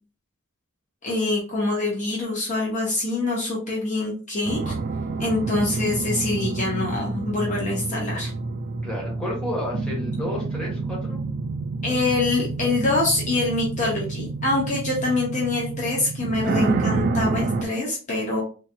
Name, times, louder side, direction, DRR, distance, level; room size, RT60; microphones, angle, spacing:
voice 1, 1.0-4.7 5.2-8.3 11.8-18.4, left 2 dB, 35° left, -3 dB, 0.9 m, -25 dB
sound 1, 4.5-17.7, right 3 dB, 45° right, 0.3 m, -28 dB
voice 2, 8.8-11.2, left 1 dB, 5° left, -4 dB, 1.3 m, -31 dB
3.8 x 2.8 x 2.2 m, 0.37 s
head